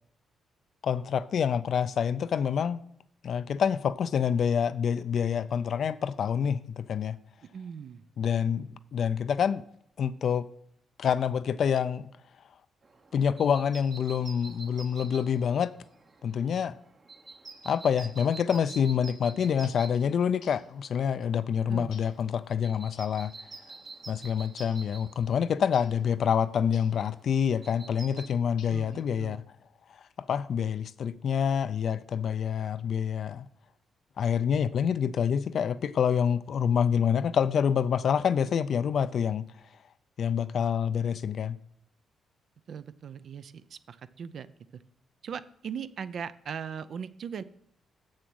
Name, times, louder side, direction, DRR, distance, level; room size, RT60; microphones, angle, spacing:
voice 1, 0.8-2.8 3.2-7.2 8.2-9.6 10.0-10.5 11.0-12.1 13.1-15.7 16.2-16.8 17.6-23.3 24.1-29.4 30.2-33.5 34.2-39.5 40.2-41.6, left 7 dB, 60° left, 0.4 m, -27 dB
voice 2, 7.5-8.0 21.7-21.9 28.7-29.4 42.7-44.5 44.7-44.8 45.2-47.4, right 7 dB, 60° right, 0.5 m, -39 dB
sound 1, 12.8-28.3, right 3 dB, 40° right, 1.0 m, -49 dB
sound 2, 19.6-19.9 20.4-20.7 21.9-22.2 22.9-23.2 24.6-24.9 25.7-26.0 26.7-27.0 28.6-29.0, left 7 dB, 85° left, 1.0 m, -54 dB
7.2 x 6.4 x 6.2 m
cardioid pair, 100°, 0 cm